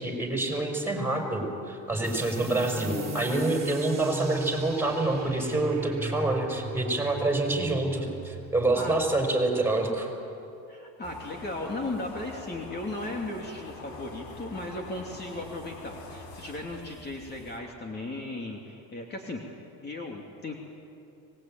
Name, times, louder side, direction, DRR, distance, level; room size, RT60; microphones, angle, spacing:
voice 1, 0.0-10.1, right 2 dB, 5° right, 2 dB, 5.5 m, -27 dB
sound 1, 2.0-9.3, right 3 dB, 25° right, 2.7 m, -38 dB
voice 2, 10.7-19.4 19.8-20.6, left 2 dB, 30° left, 0 dB, 2.9 m, -36 dB
sound 2, 11.0-17.6, left 3 dB, 80° left, 3.9 m, -45 dB
25.0 x 20.0 x 9.1 m, 2.7 s
supercardioid pair, 100°, 35 cm